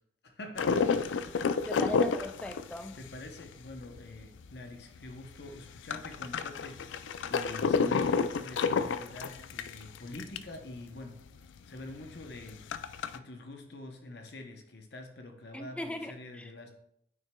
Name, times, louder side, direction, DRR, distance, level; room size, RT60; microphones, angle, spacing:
voice 1, 0.2-1.2 2.9-7.0 7.3-11.2 11.7-12.6 13.1-16.7, left 2 dB, 60° left, 4 dB, 0.8 m, -46 dB
sound 1, 0.6-4.6 5.0-5.1 5.2-10.6 11.0-11.1 11.3-11.4 11.9-13.2, left 5 dB, 85° left, 0.3 m, -30 dB
voice 2, 1.7-3.0 15.5-16.5, left 1 dB, 5° left, 7 dB, 0.4 m, -39 dB
9.2 x 6.1 x 2.3 m, 0.74 s
head